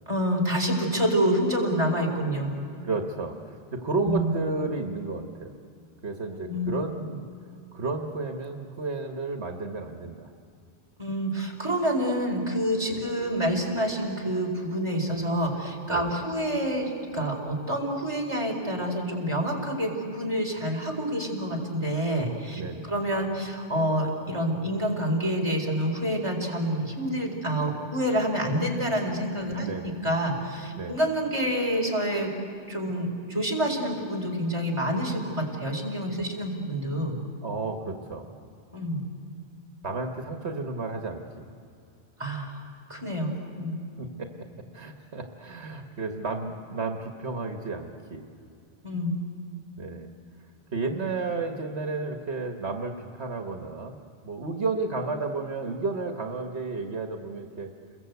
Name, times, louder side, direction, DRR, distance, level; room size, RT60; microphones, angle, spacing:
voice 1, 0.1-2.5 4.0-4.3 6.5-6.7 11.0-22.6 22.9-32.3 32.7-37.2 38.7-39.0 42.2-42.6 42.9-43.8 48.8-49.2, equal, 25° right, -1 dB, 4.5 m, -27 dB
voice 2, 2.4-5.5 6.0-7.3 7.7-10.3 12.9-13.0 15.9-16.1 22.6-22.9 29.5-30.0 30.8-31.0 36.2-36.3 37.4-38.3 39.8-41.5 44.0-44.3 44.7-48.2 49.8-50.1 50.7-54.0 54.2-57.7, right 3 dB, 80° right, 3 dB, 1.7 m, -32 dB
29.5 x 22.0 x 8.2 m, 2.5 s
omnidirectional pair, 1.1 m